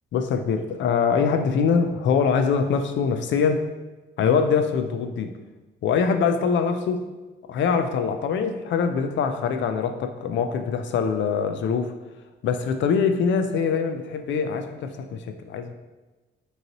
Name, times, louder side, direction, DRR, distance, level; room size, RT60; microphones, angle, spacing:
voice 1, 0.1-3.6 4.2-5.4 5.8-7.0 7.5-11.9 12.4-15.7, left 6 dB, 70° left, 8 dB, 0.5 m, -23 dB
5.2 x 3.1 x 2.9 m, 1.2 s
cardioid pair, 90°, 20 cm